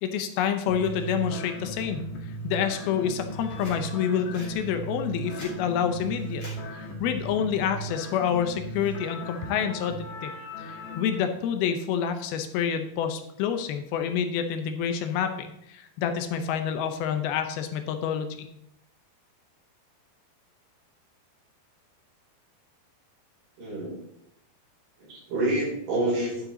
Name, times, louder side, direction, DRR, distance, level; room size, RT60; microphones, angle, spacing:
voice 1, 0.0-2.0 2.4-6.4 6.7-10.3 10.6-18.5, left 8 dB, 80° left, 7 dB, 2.6 m, -28 dB
sound 1, 0.7-11.2, right 1 dB, 60° left, 2.4 m, -37 dB
sound 2, 3.5-3.8 4.3-4.5 5.1-5.6 6.3-6.6 7.9-8.2, left 1 dB, 30° left, 3.9 m, -43 dB
voice 2, 23.6-24.0 25.0-26.4, right 1 dB, 70° right, -5 dB, 6.3 m, -27 dB
10.5 x 7.5 x 3.9 m, 0.77 s
omnidirectional pair, 4.5 m